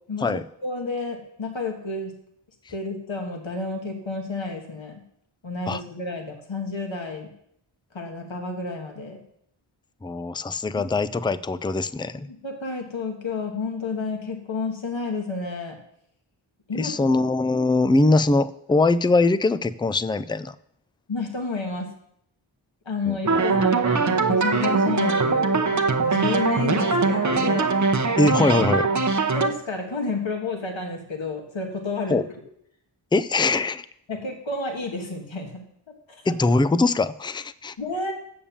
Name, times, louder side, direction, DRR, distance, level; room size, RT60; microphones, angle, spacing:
voice 1, 0.1-2.1 2.7-5.0 5.4-7.3 7.9-9.2 10.7-10.8 12.3-15.8 16.7-17.2 21.1-21.9 22.9-27.7 29.3-32.2 34.1-35.6 36.1-36.3 37.8-38.1, left 3 dB, 65° left, 2 dB, 1.9 m, -30 dB
voice 2, 10.0-12.3 16.7-20.5 23.1-23.4 28.2-28.9 32.1-32.2 33.1-33.9 36.3-37.7, left 3 dB, 10° left, 16 dB, 0.4 m, -22 dB
sound 1, 23.2-29.5, right 4 dB, 35° right, 0.9 m, -21 dB
8.6 x 7.1 x 7.2 m, 0.72 s
wide cardioid pair, 45°, 49 cm